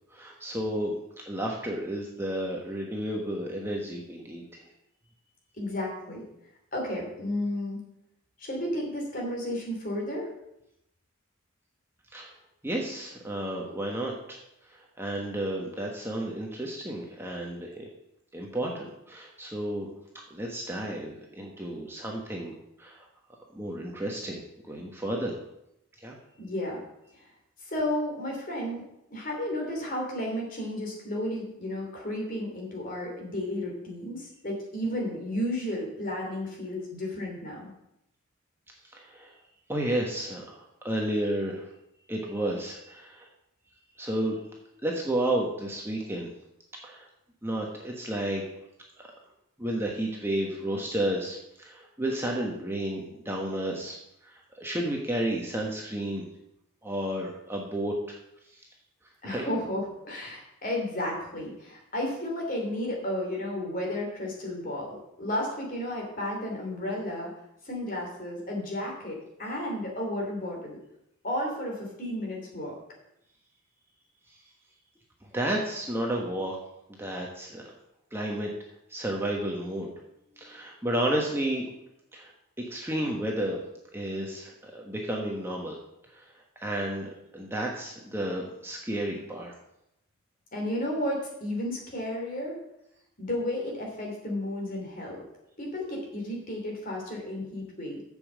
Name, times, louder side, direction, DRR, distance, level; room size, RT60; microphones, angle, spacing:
voice 1, 0.1-1.0 1.3-4.7 12.1-12.3 12.6-17.9 18.3-19.9 20.3-23.1 23.5-25.4 26.0-26.1 38.8-39.3 39.7-41.7 42.1-43.3 44.0-44.4 44.8-46.3 46.8-47.1 47.4-48.4 49.0-49.1 49.6-56.3 56.8-58.2 58.5-58.6 59.2-59.5 74.3-74.4 75.2-76.6 76.9-77.6 78.1-78.5 78.9-79.9 80.4-81.7 82.1-82.3 82.6-83.6 83.9-85.8 86.1-89.5, right 1 dB, 10° right, -1 dB, 1.1 m, -32 dB
voice 2, 5.6-6.2 6.7-7.8 8.4-10.3 26.4-26.8 27.1-27.3 27.6-37.7 59.2-67.3 67.6-70.8 71.2-72.7 80.3-80.5 90.5-92.6 93.2-95.3 95.6-98.0, left 1 dB, 40° left, -1 dB, 3.1 m, -33 dB
8.5 x 6.9 x 7.5 m, 0.83 s
head